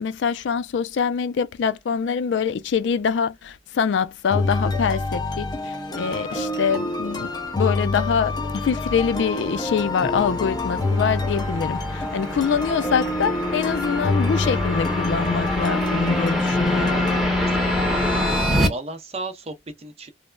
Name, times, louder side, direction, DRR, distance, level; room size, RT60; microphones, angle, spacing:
voice 1, 0.0-17.0, left 6 dB, 70° left, 0.3 m, -24 dB
sound 1, 4.3-17.3, left 2 dB, 25° left, 0.6 m, -27 dB
sound 2, 7.2-18.7, left 1 dB, ahead, 0.9 m, -26 dB
voice 2, 17.5-18.4 18.7-20.1, right 2 dB, 35° right, 0.6 m, -35 dB
3.2 x 2.0 x 2.3 m
head